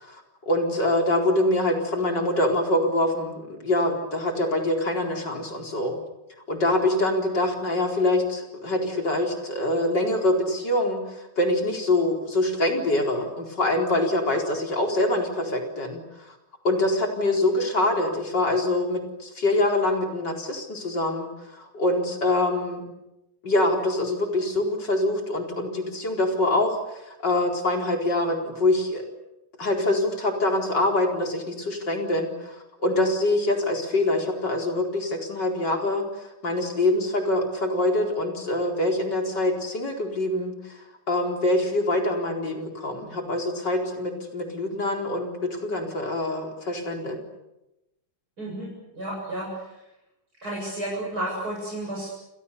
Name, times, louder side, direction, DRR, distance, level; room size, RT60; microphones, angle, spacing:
voice 1, 0.0-6.0 6.5-16.4 16.6-22.8 23.4-29.0 29.6-40.8 41.1-47.2, left 1 dB, 60° left, 2 dB, 5.0 m, -25 dB
voice 2, 48.4-49.8 50.4-52.1, right 1 dB, 50° right, -3 dB, 8.4 m, -32 dB
29.5 x 28.5 x 6.9 m, 0.93 s
omnidirectional pair, 2.2 m